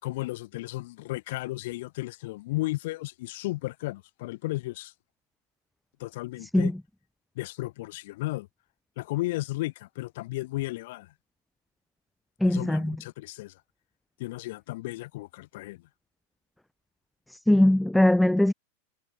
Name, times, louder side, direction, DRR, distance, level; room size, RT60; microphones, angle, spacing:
voice 1, 0.0-4.9 6.0-6.7 7.3-8.5 9.0-11.1 12.4-13.6 14.2-15.8, left 19 dB, 50° left, 4.2 m, -34 dB
voice 2, 12.4-13.0 17.5-18.5, left 1 dB, 5° left, 0.5 m, -20 dB
figure-of-eight pair, 90°, 0 cm